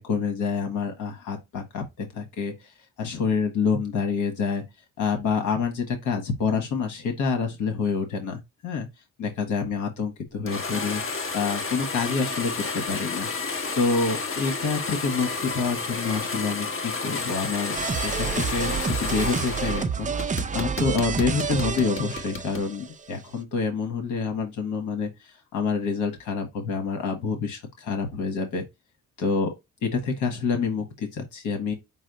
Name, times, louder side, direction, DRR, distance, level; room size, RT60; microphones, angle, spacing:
voice 1, 0.0-2.7 3.0-4.6 5.0-8.9 9.2-11.0 11.3-13.3 13.7-28.6 29.2-29.5 29.8-31.7, left 5 dB, 80° left, 1.4 m, -27 dB
sound 1, 10.5-19.9 20.2-22.7, left 4 dB, 45° left, 1.5 m, -31 dB
sound 2, 17.7-22.9, right 6 dB, 25° right, 0.5 m, -29 dB
6.1 x 2.1 x 4.0 m
cardioid pair, 90°, 30 cm